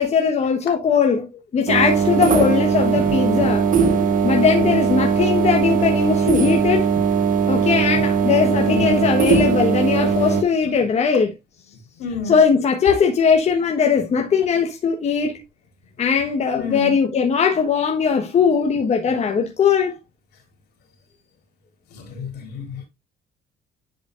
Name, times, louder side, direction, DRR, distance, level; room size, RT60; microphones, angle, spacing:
voice 1, 0.0-3.7 4.2-6.9 7.5-11.3 12.3-15.4 16.0-19.9, left 6 dB, 40° left, 1.2 m, -19 dB
sound 1, 1.7-10.4, right 6 dB, 50° right, 1.3 m, -19 dB
voice 2, 2.1-2.6 4.6-5.0 8.6-9.0 10.1-10.8 12.0-12.4 14.2-14.5 16.6-16.9 21.9-22.9, left 4 dB, 70° left, 3.6 m, -31 dB
10.5 x 5.0 x 2.5 m
cardioid pair, 110°, 17 cm